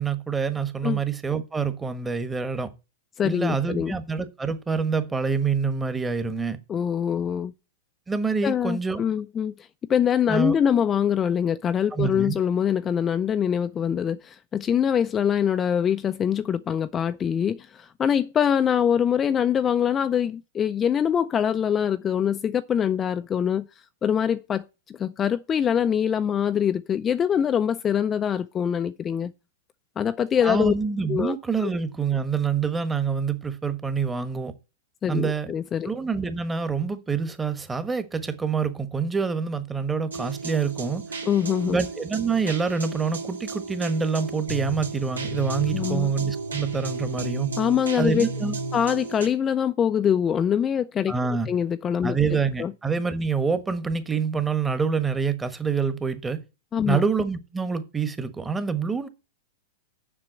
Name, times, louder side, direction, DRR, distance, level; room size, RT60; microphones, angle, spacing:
voice 1, 0.0-2.7 3.2-6.6 8.1-9.0 10.3-10.6 11.9-12.4 30.4-34.5 35.1-35.5 35.8-41.0 41.6-47.5 48.0-48.5 51.1-51.5 52.0-56.4 56.8-59.1, right 5 dB, 15° right, 1.2 m, -26 dB
voice 2, 3.2-4.0 6.7-7.5 8.4-23.6 24.0-29.3 30.0-30.7 31.1-31.4 31.6-31.7 35.0-35.9 41.3-41.8 45.7-46.1 47.6-48.3 48.7-51.1 51.5-52.2 52.6-52.7 56.7-57.0, left 8 dB, 25° left, 0.4 m, -24 dB
sound 1, 40.1-49.3, right 2 dB, 85° right, 2.5 m, -33 dB
7.4 x 6.0 x 7.6 m
hypercardioid pair, 105°, 0 cm